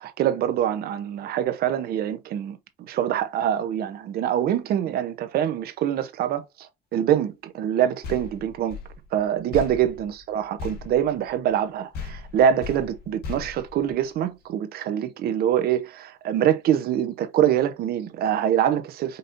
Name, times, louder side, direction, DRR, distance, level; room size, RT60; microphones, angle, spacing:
voice 1, 0.2-2.6 2.9-8.8 9.1-19.2, right 10 dB, 65° right, 0.7 m, -24 dB
sound 1, 8.0-11.7 11.9-14.4, left 5 dB, 70° left, 1.5 m, -38 dB
5.3 x 2.8 x 2.5 m
cardioid pair, 110°, 17 cm